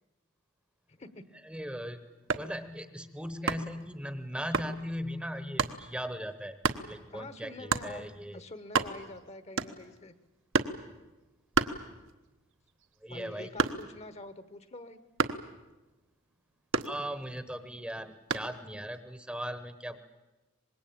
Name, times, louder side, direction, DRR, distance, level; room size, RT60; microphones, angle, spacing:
voice 1, 0.9-1.2 7.1-10.1 13.1-15.0, left 2 dB, 30° left, 12 dB, 1.1 m, -46 dB
voice 2, 1.4-6.6 6.9-8.4 13.0-13.5 16.8-20.0, equal, 5° right, 11 dB, 1.0 m, -38 dB
sound 1, 2.1-2.6 3.5-3.8 4.5-4.8 5.6-5.8 6.6-6.9 7.7-7.9 8.4-8.5 8.6-9.2 9.6-10.0 10.5-10.8 11.5-12.3 12.7-14.1 15.2-15.5 16.7-17.4 18.3-18.6, right 4 dB, 60° right, 1.1 m, -30 dB
25.0 x 21.0 x 8.7 m, 1.1 s
head